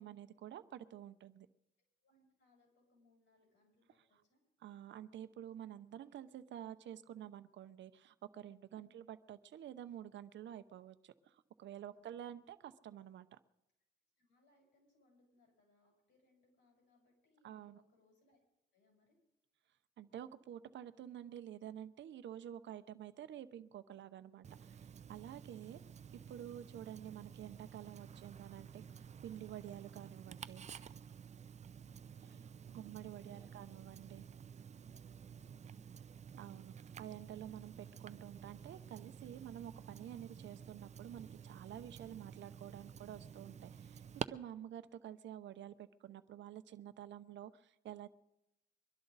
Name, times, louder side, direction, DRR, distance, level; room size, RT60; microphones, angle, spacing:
voice 1, 0.0-1.5 4.6-13.4 17.4-17.8 20.0-25.8 26.3-28.9 29.2-30.6 32.7-34.2 36.3-48.1, right 11 dB, 65° right, 12 dB, 0.8 m, -50 dB
voice 2, 2.0-4.4 8.7-9.1 11.9-12.4 14.2-18.4 18.7-19.2 31.6-33.7 34.9-35.8, left 2 dB, 65° left, -1 dB, 7.5 m, -73 dB
Tick-tock, 24.4-44.2, right 7 dB, 35° right, 0.5 m, -51 dB
23.0 x 12.5 x 4.0 m, 0.88 s
cardioid pair, 90°, 20 cm